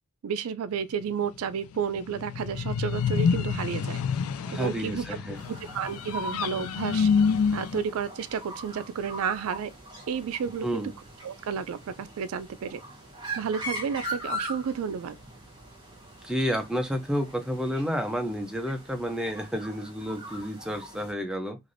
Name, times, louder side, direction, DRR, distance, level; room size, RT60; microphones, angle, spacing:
voice 1, 0.2-4.0 4.5-5.1 5.5-7.1 7.5-9.7 10.1-10.9 11.2-12.8 13.4-15.2, right 7 dB, 75° right, 0.3 m, -31 dB
sound 1, 2.0-7.8, left 6 dB, 85° left, 0.4 m, -27 dB
voice 2, 4.5-5.4 10.6-10.9 16.2-21.6, equal, 5° right, 0.4 m, -30 dB
sound 2, 5.3-21.1, right 1 dB, 20° right, 0.9 m, -41 dB
3.2 x 2.5 x 2.6 m
head